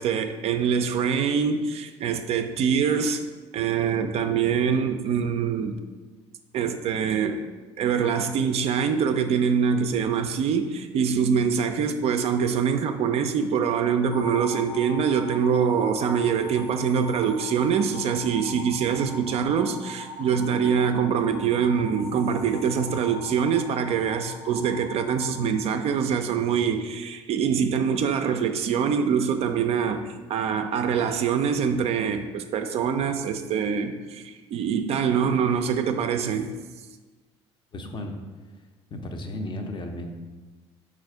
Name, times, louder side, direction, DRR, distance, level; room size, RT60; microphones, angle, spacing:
voice 1, 0.0-3.2 3.5-5.8 6.5-7.4 7.8-36.5, right 7 dB, 45° right, 7 dB, 0.4 m, -24 dB
sound 1, 14.1-26.3, left 2 dB, 75° left, 0.6 m, -40 dB
voice 2, 37.7-38.1 38.9-40.2, left 1 dB, 35° left, 4 dB, 0.6 m, -34 dB
4.0 x 2.5 x 4.4 m, 1.3 s
hypercardioid pair, 60°, 14 cm